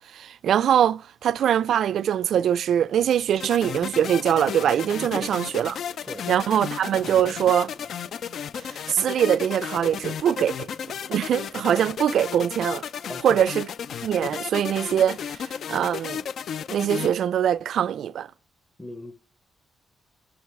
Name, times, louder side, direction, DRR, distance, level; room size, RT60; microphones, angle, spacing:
voice 1, 0.0-5.8 6.3-7.7 8.5-10.7 11.1-12.8 13.2-13.7 14.0-16.2 16.7-18.3, right 9 dB, 70° right, 0.3 m, -23 dB
sound 1, 3.4-17.1, left 8 dB, 60° left, 0.3 m, -34 dB
voice 2, 13.1-13.4 18.8-19.1, equal, 5° left, 0.7 m, -37 dB
9.5 x 5.7 x 4.6 m
wide cardioid pair, 150°, 0 cm